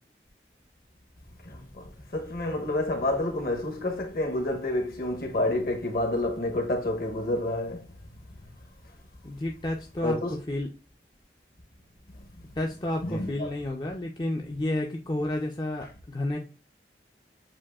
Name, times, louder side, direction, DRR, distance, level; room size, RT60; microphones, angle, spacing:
voice 1, 1.4-7.8 10.0-10.3 13.0-13.5, left 1 dB, 55° left, 1.0 m, -29 dB
voice 2, 9.2-10.7 12.6-16.4, left 1 dB, 25° left, 0.5 m, -31 dB
7.4 x 2.6 x 2.3 m
head